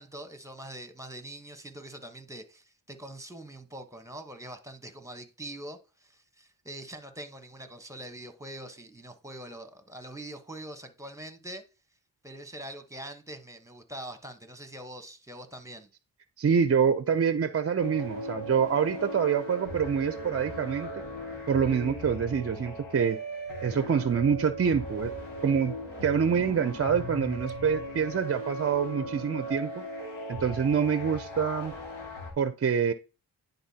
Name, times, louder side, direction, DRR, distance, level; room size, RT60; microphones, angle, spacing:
voice 1, 0.0-11.6 12.2-15.9, right 1 dB, 5° right, 1.1 m, -43 dB
voice 2, 16.4-21.0 21.5-23.2 23.6-25.1 25.4-25.7 26.0-29.8 30.3-31.7 32.4-32.9, right 7 dB, 35° right, 0.5 m, -26 dB
sound 1, 17.8-32.3, equal, 85° left, 2.2 m, -38 dB
10.0 x 4.0 x 2.8 m
cardioid pair, 50°, 43 cm